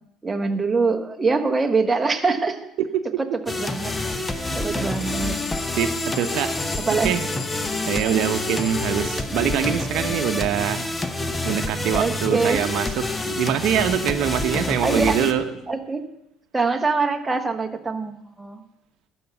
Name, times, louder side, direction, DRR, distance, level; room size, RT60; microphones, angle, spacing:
voice 1, 0.2-2.6 3.6-3.9 4.5-5.4 6.9-7.1 8.0-8.2 11.9-12.6 14.8-15.2 15.7-16.0 16.5-18.6, right 4 dB, 20° right, 6 dB, 1.2 m, -23 dB
sound 1, 3.5-15.3, left 2 dB, 15° left, 1.0 m, -27 dB
voice 2, 4.3-4.9 5.8-6.5 6.9-7.3 7.9-10.9 11.4-15.4, right 10 dB, 70° right, 9 dB, 0.8 m, -24 dB
sound 2, 4.9-8.9, left 6 dB, 55° left, 1.4 m, -36 dB
12.5 x 5.8 x 8.2 m, 0.81 s
supercardioid pair, 90°, 0 cm